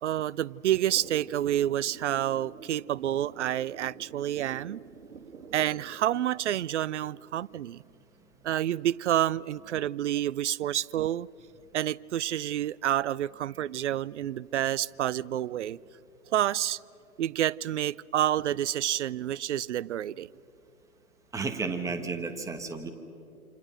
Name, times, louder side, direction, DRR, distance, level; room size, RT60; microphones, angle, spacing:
voice 1, 0.0-4.8 5.5-7.8 8.4-11.3 11.7-15.8 16.3-16.8 17.2-20.3, right 12 dB, 50° right, 22 dB, 0.5 m, -29 dB
sound 1, 0.9-6.0, right 6 dB, 70° right, 2.2 m, -47 dB
voice 2, 21.3-22.9, right 4 dB, 5° right, 6 dB, 1.4 m, -33 dB
28.0 x 27.5 x 6.3 m, 2.6 s
hypercardioid pair, 135°, 45 cm